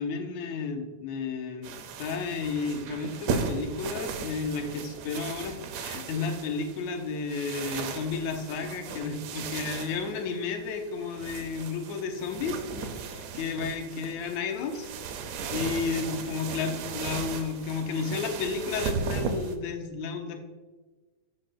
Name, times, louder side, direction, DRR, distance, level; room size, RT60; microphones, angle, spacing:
voice 1, 0.0-14.9 15.2-20.4, left 5 dB, 75° left, 4 dB, 2.1 m, -32 dB
sound 1, 1.6-19.6, right 6 dB, 75° right, 1.7 m, -36 dB
13.0 x 5.9 x 2.3 m, 1.3 s
omnidirectional pair, 3.4 m